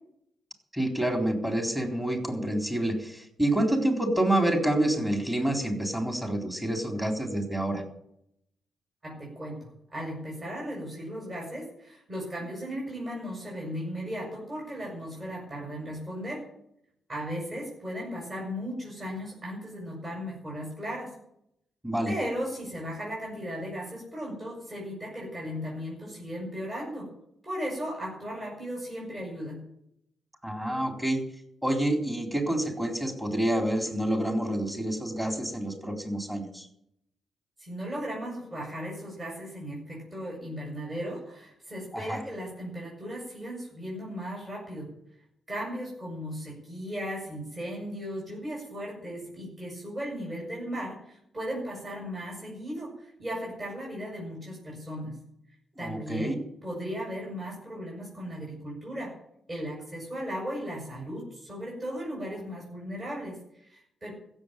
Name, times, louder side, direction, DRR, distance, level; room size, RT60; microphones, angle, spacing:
voice 1, 0.7-7.8 21.8-22.1 30.4-31.2 31.6-36.7 41.9-42.2 55.8-56.4, right 1 dB, 10° right, 3 dB, 4.0 m, -28 dB
voice 2, 9.0-16.5 17.1-21.1 22.1-27.1 27.4-29.6 37.6-44.9 45.5-55.2 55.8-59.1 59.5-64.1, equal, 30° right, -3 dB, 7.6 m, -36 dB
15.5 x 7.6 x 9.2 m, 0.75 s
cardioid pair, 85°, 0 cm